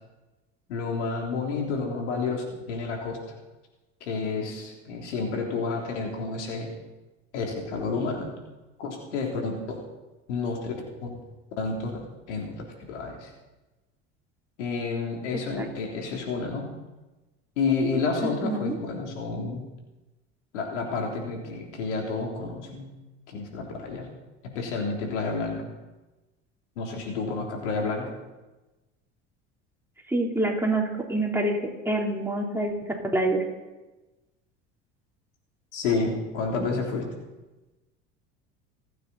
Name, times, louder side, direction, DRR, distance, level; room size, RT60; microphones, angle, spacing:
voice 1, 0.7-3.2 4.0-6.7 7.3-8.3 8.8-9.8 10.3-10.7 11.0-11.1 11.6-13.3 14.6-16.7 17.6-19.6 20.5-22.9 23.3-24.1 24.5-25.7 26.8-28.1 35.7-37.1, left 4 dB, 85° left, 0 dB, 3.4 m, -30 dB
voice 2, 15.3-15.7 18.2-18.8 30.1-32.7 33.1-33.4, right 2 dB, 5° right, -1 dB, 3.5 m, -26 dB
26.5 x 9.3 x 4.2 m, 1.1 s
hypercardioid pair, 85°, 34 cm